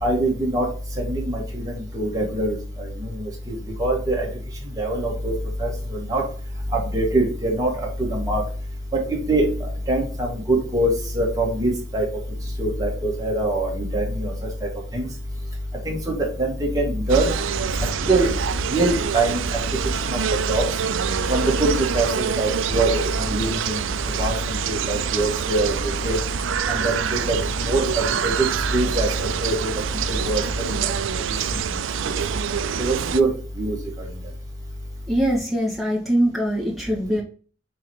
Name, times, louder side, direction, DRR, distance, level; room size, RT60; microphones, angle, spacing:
voice 1, 0.0-0.6 1.3-1.4 2.0-2.5 3.8-4.2 4.8-5.3 5.6-5.7 6.1-6.2 6.7-7.7 8.1-8.4 9.3-9.5 9.9-10.3 10.7-10.9 11.2-12.0 12.6-14.0 15.9-16.0 16.8-17.3 18.1-18.3 18.7-19.4 20.5-20.6 21.3-21.7 21.9-22.9 23.3-23.5 24.2-24.3 24.7-25.7 26.0-26.2 26.8-26.9 27.7-27.8 28.7-29.1 29.4-29.5 30.3-30.4 32.8-33.3 33.6-33.7, right 2 dB, 20° right, -2 dB, 1.9 m, -22 dB
sound 1, 17.1-33.2, right 7 dB, 85° right, 0.4 m, -26 dB
voice 2, 35.1-37.2, equal, ahead, -4 dB, 1.9 m, -22 dB
6.4 x 3.2 x 4.5 m, 0.40 s
head